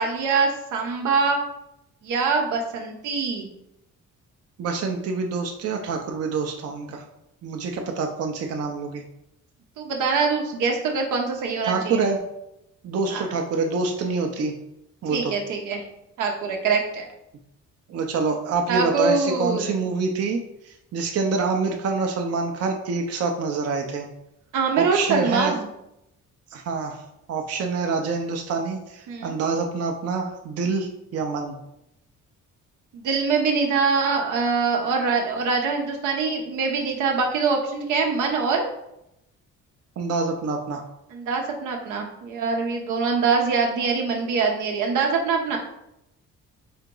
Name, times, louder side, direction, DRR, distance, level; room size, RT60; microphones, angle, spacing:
voice 1, 0.0-1.4 2.0-3.5 9.8-12.0 13.1-13.3 15.1-15.8 16.2-17.1 18.7-19.8 24.5-25.7 29.1-29.3 32.9-38.7 41.1-45.6, right 4 dB, 85° right, 2 dB, 0.9 m, -24 dB
voice 2, 4.6-7.0 7.4-9.0 11.6-12.2 12.8-14.5 15.0-15.3 17.9-20.4 20.6-24.1 24.8-25.6 26.5-27.0 27.3-31.6 40.0-40.8, right 4 dB, 55° right, 2 dB, 0.6 m, -26 dB
4.3 x 2.9 x 3.7 m, 0.84 s
cardioid pair, 90°, 30 cm